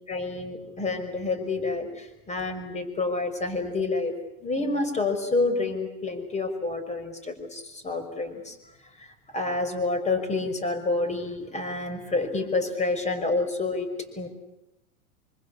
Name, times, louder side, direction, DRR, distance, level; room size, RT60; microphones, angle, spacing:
voice 1, 0.1-4.2 4.4-8.6 9.3-13.9 14.2-14.3, left 3 dB, 15° left, 9 dB, 5.6 m, -28 dB
26.0 x 25.5 x 8.5 m, 0.93 s
hypercardioid pair, 110°, 42 cm